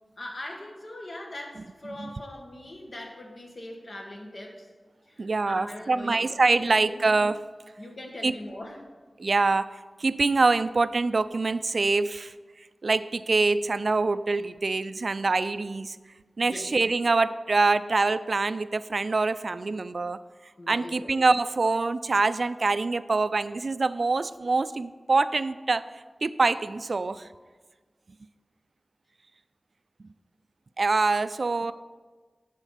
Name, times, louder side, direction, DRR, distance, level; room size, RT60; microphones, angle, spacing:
voice 1, 0.2-4.7 5.1-7.1 7.8-8.8 16.4-16.7 20.6-21.2, left 1 dB, 55° left, 1 dB, 1.7 m, -41 dB
voice 2, 5.2-7.4 8.2-8.3 9.2-9.7 10.0-12.3 12.8-16.0 16.4-20.2 20.7-25.8 26.2-27.3 30.8-31.7, right 3 dB, 65° right, 14 dB, 0.3 m, -25 dB
12.0 x 4.4 x 5.7 m, 1.4 s
wide cardioid pair, 50°, 0 cm